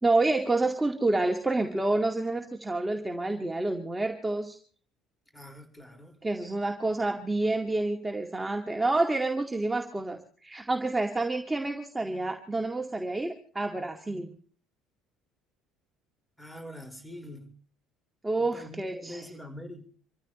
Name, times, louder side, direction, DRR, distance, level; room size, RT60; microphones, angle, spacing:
voice 1, 0.0-4.6 6.2-14.4 18.2-19.2, right 2 dB, 15° right, 3 dB, 2.1 m, -28 dB
voice 2, 5.3-6.2 16.4-17.5 18.4-19.9, equal, 10° left, 6 dB, 5.3 m, -44 dB
27.0 x 14.5 x 3.2 m, 0.43 s
hypercardioid pair, 60°, 0 cm